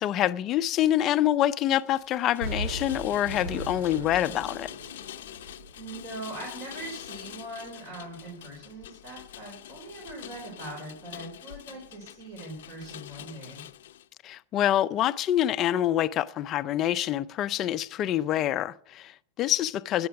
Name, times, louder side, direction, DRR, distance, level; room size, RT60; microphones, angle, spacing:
voice 1, 0.0-4.7 14.2-20.1, left 12 dB, 30° left, 0.4 m, -26 dB
Rain, 1.7-14.1, left 12 dB, 80° left, 0.6 m, -45 dB
Explosion, 2.4-6.3 6.8-6.9, right 2 dB, 75° right, 2.9 m, -38 dB
voice 2, 5.8-13.6, right 2 dB, 50° right, 4.2 m, -41 dB
11.5 x 8.6 x 5.8 m
supercardioid pair, 155°, 0 cm